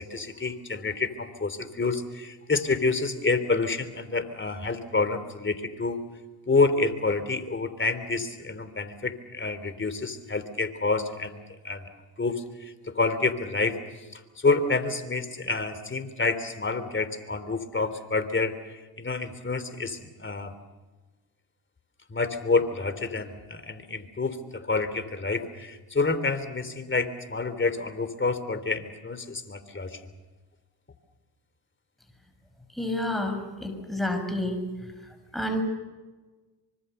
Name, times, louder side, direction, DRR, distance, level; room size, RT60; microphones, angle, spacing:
voice 1, 0.0-6.0 6.5-11.9 12.2-13.8 14.1-20.5 22.1-30.0, left 3 dB, 25° left, 11 dB, 3.1 m, -28 dB
voice 2, 32.8-34.6 35.3-35.6, left 1 dB, ahead, 5 dB, 6.2 m, -29 dB
25.0 x 24.5 x 6.9 m, 1.3 s
supercardioid pair, 70°, 47 cm